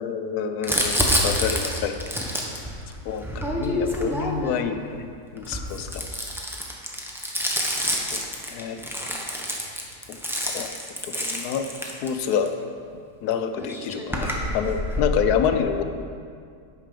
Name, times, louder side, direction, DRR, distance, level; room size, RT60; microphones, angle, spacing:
voice 1, 0.0-2.4 3.1-3.2 3.5-5.8 8.1-8.8 10.5-10.7 11.0-12.5 13.2-15.8, left 7 dB, 80° left, 8 dB, 1.1 m, -27 dB
Crumpling crinkling, 0.6-4.7 5.4-12.5 13.3-13.4 13.6-15.2, equal, ahead, 0.5 m, -27 dB
8.9 x 5.9 x 5.1 m, 2.3 s
omnidirectional pair, 1.6 m